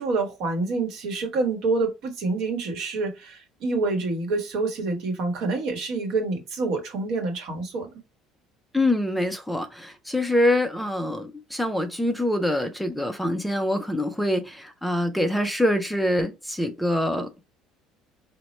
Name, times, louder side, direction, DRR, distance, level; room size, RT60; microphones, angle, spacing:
voice 1, 0.0-7.9, right 3 dB, 55° right, 1.0 m, -27 dB
voice 2, 8.7-17.4, left 1 dB, ahead, 0.3 m, -25 dB
4.1 x 2.1 x 3.0 m
cardioid pair, 170°, 0 cm